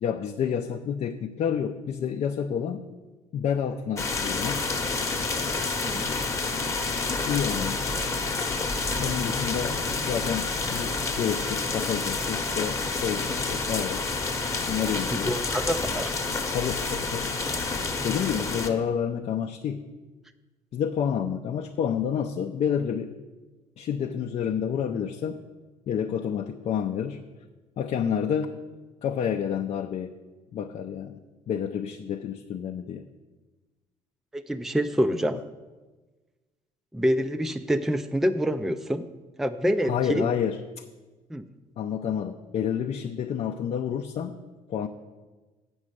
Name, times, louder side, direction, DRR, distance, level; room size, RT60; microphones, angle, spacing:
voice 1, 0.0-2.9 3.3-4.7 7.3-7.8 9.0-14.1 14.7-15.4 16.5-17.3 18.0-19.8 20.7-23.1 23.8-25.4 25.9-27.2 27.8-28.6 29.0-30.1 30.5-31.2 31.5-33.1 39.9-40.8 41.8-44.4 44.7-44.9, left 8 dB, 50° left, 3 dB, 0.5 m, -29 dB
sound 1, 4.0-18.7, left 3 dB, 20° left, 1.0 m, -29 dB
voice 2, 15.3-16.1 34.3-35.4 36.9-39.1 39.4-40.3 41.3-41.4, equal, ahead, 9 dB, 0.4 m, -26 dB
7.5 x 6.2 x 7.9 m, 1.2 s
cardioid pair, 120°, 14 cm